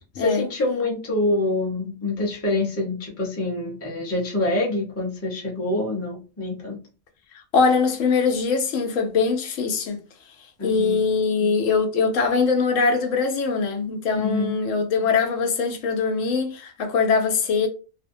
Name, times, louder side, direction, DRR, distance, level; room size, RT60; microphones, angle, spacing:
voice 1, 0.1-6.8 10.6-11.0 14.1-14.5, left 2 dB, 15° left, 0.6 m, -26 dB
voice 2, 7.5-10.0 10.6-17.7, left 5 dB, 80° left, 1.0 m, -22 dB
2.6 x 2.1 x 2.6 m
omnidirectional pair, 1.3 m